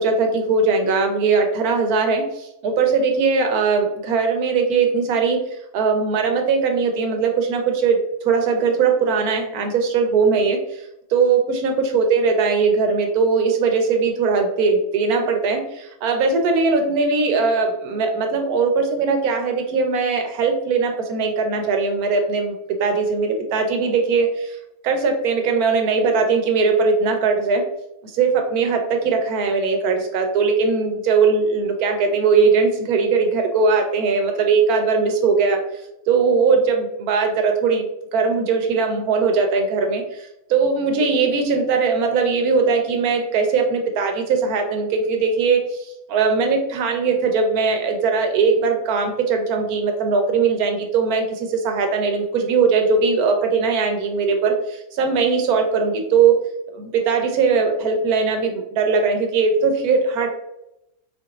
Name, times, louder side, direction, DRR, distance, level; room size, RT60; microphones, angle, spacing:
voice 1, 0.0-5.4 5.7-10.8 11.1-22.5 22.8-24.6 24.8-27.7 28.0-35.6 36.1-56.4 56.7-60.3, right 5 dB, 75° right, 4 dB, 1.2 m, -20 dB
4.0 x 2.6 x 2.9 m, 0.85 s
omnidirectional pair, 1.6 m